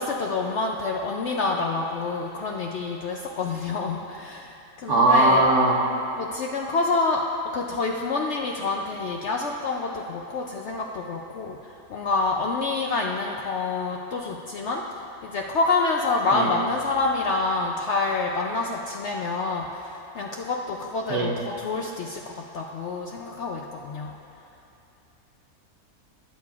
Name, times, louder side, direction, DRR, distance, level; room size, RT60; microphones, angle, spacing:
voice 1, 0.0-5.5 6.1-14.8 15.2-24.1, left 3 dB, 65° left, 0 dB, 0.7 m, -27 dB
voice 2, 4.9-5.8 16.3-16.5 21.1-21.4, right 2 dB, 70° right, 0 dB, 1.4 m, -19 dB
16.5 x 8.3 x 2.4 m, 2.8 s
omnidirectional pair, 1.6 m